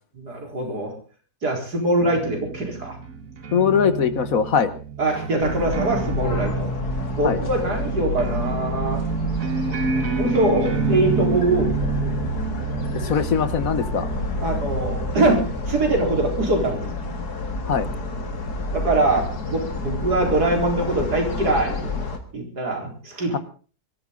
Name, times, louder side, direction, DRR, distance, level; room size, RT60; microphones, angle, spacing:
voice 1, 0.1-0.9 1.4-3.0 5.0-6.7 7.2-9.0 10.2-12.2 14.4-16.9 18.7-21.8 22.3-23.4, right 2 dB, 85° right, 2 dB, 4.9 m, -23 dB
sound 1, 2.0-17.3, right 4 dB, 60° right, 2.1 m, -29 dB
voice 2, 3.5-4.7 7.2-7.4 13.0-14.1 17.7-17.9, left 7 dB, 60° left, 13 dB, 1.6 m, -21 dB
sound 2, 5.4-22.2, left 2 dB, 80° left, 2.5 m, -29 dB
23.0 x 13.5 x 3.9 m, 0.39 s
omnidirectional pair, 1.7 m